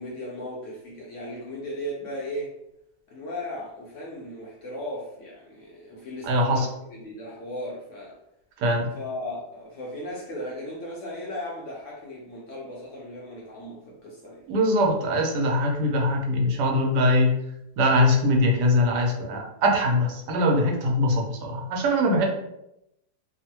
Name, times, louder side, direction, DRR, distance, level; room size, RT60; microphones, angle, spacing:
voice 1, 0.0-2.5 3.1-8.2 9.0-14.4, left 1 dB, 65° left, -3 dB, 0.8 m, -36 dB
voice 2, 6.2-6.7 8.6-8.9 14.5-17.3 17.8-22.2, left 1 dB, 85° right, 1 dB, 1.2 m, -22 dB
3.0 x 2.1 x 2.8 m, 0.84 s
omnidirectional pair, 1.7 m